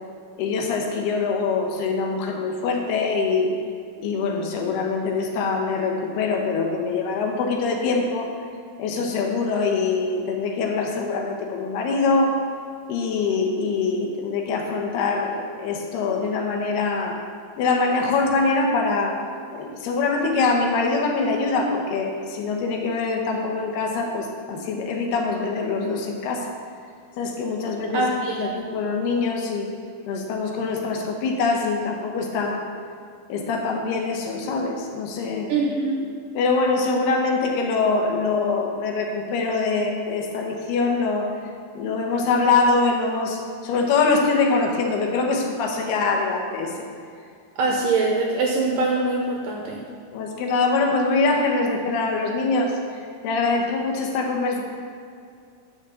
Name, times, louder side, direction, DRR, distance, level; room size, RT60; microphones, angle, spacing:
voice 1, 0.3-3.5 4.0-8.3 8.8-12.4 12.9-17.2 17.6-19.2 19.5-26.5 27.2-28.1 28.4-29.7 30.1-32.6 33.3-35.5 36.3-41.3 41.8-46.9 50.1-52.8 53.2-54.6, left 4 dB, 75° left, 2 dB, 3.0 m, -24 dB
voice 2, 27.9-28.5 35.5-36.1 47.6-49.8, right 3 dB, 75° right, 0 dB, 2.1 m, -23 dB
10.0 x 6.2 x 6.9 m, 2.3 s
omnidirectional pair, 4.7 m